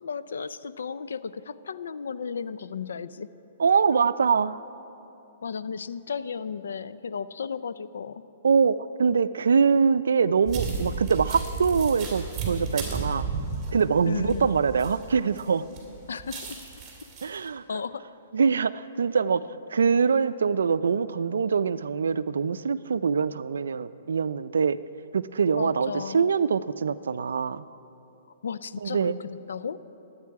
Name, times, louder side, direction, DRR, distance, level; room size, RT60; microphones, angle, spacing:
voice 1, 0.0-3.3 5.4-8.2 14.0-14.5 16.1-16.6 17.7-18.0 25.5-26.3 28.4-29.8, left 6 dB, 85° left, 14 dB, 0.5 m, -34 dB
voice 2, 3.6-4.6 8.4-13.3 13.7-15.6 17.2-17.6 18.3-19.4 19.7-24.8 25.1-27.6 28.8-29.2, right 6 dB, 90° right, 14 dB, 0.4 m, -24 dB
sound 1, 10.5-15.4 15.8-17.4, right 5 dB, 20° right, 3.2 m, -33 dB
22.5 x 8.9 x 4.8 m, 2.9 s
hypercardioid pair, 155°, 0 cm